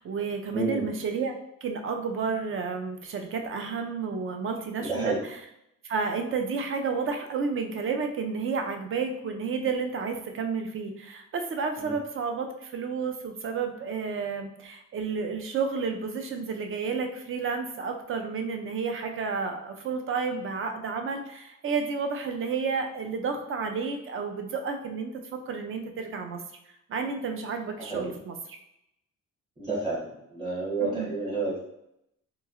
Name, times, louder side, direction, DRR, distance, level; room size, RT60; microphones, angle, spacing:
voice 1, 0.0-1.3 1.6-5.4 5.8-25.1 25.5-26.4 26.9-28.3 30.8-31.1, right 5 dB, 45° right, 5 dB, 0.4 m, -31 dB
voice 2, 0.5-0.8 4.8-5.2 11.8-11.9 27.9-28.1 29.6-30.0 30.3-31.6, right 3 dB, 20° right, -9 dB, 1.0 m, -29 dB
2.9 x 2.7 x 2.4 m, 0.82 s
cardioid pair, 135°, 31 cm